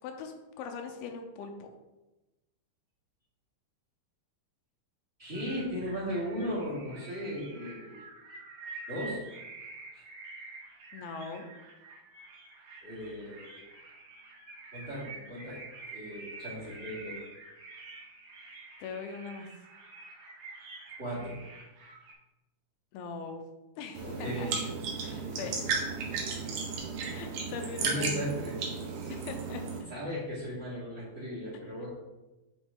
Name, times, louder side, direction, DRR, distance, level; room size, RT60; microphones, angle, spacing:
voice 1, 0.0-1.7 10.9-11.5 18.8-19.5 22.9-23.4 23.8-24.5 25.4-25.7 27.0-28.2 29.1-29.7, left 5 dB, 85° left, 4 dB, 2.6 m, -41 dB
voice 2, 5.2-8.0 8.9-9.2 9.9-10.0 12.8-13.6 14.7-15.6 15.9-17.2 21.0-21.4 24.0-24.6 25.0-25.5 27.8-28.6 29.9-31.9, equal, 20° right, -9 dB, 2.6 m, -37 dB
sound 1, 5.3-22.1, right 3 dB, 90° right, 3.4 m, -48 dB
sound 2, 23.9-29.8, right 5 dB, 75° right, 2.9 m, -34 dB
8.0 x 5.5 x 3.7 m, 1.1 s
omnidirectional pair, 4.3 m